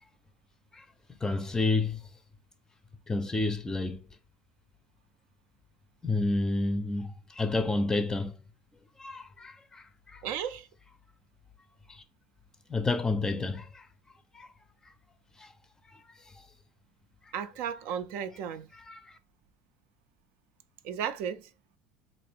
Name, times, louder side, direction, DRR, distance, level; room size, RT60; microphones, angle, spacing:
voice 1, 0.7-2.0 3.1-4.1 6.0-8.4 9.0-10.2 11.9-12.0 12.7-13.9 14.3-14.5 15.4-15.5 15.9-16.0 16.3-16.4 18.7-19.2, left 3 dB, 15° left, 0.5 m, -30 dB
voice 2, 10.2-10.7 17.3-18.7 20.8-21.5, right 8 dB, 65° right, 0.4 m, -34 dB
3.5 x 2.5 x 3.3 m
supercardioid pair, 100°, 4 cm